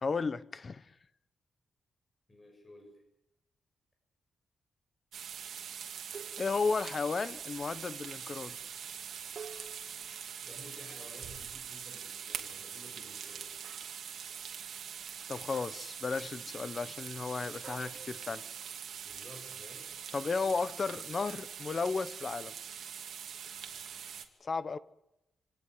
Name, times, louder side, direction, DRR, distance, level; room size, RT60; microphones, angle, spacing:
voice 1, 0.0-0.9 6.4-8.6 15.3-18.4 20.1-22.5 24.4-24.8, left 4 dB, 35° left, 1.0 m, -34 dB
voice 2, 2.3-3.0 10.4-13.5 19.0-19.9, left 1 dB, 20° left, 7.4 m, -53 dB
sound 1, 5.1-24.2, right 8 dB, 75° right, 2.6 m, -43 dB
sound 2, 6.1-7.1 9.3-11.1 13.6-14.1 15.5-16.0 17.6-18.9, right 5 dB, 50° right, 1.6 m, -51 dB
28.0 x 18.5 x 7.9 m
wide cardioid pair, 140°, 0 cm